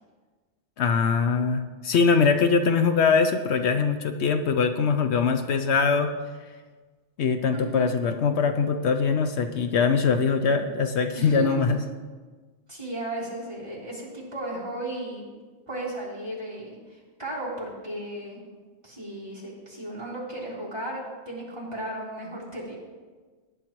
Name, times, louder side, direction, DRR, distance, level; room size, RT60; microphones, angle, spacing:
voice 1, 0.8-6.1 7.2-11.8, left 5 dB, 75° left, 7 dB, 0.9 m, -22 dB
voice 2, 7.5-7.9 11.1-11.6 12.7-15.2 15.7-18.4 18.8-22.8, right 1 dB, 25° right, -7 dB, 4.0 m, -35 dB
18.5 x 10.0 x 3.1 m, 1.4 s
omnidirectional pair, 1.2 m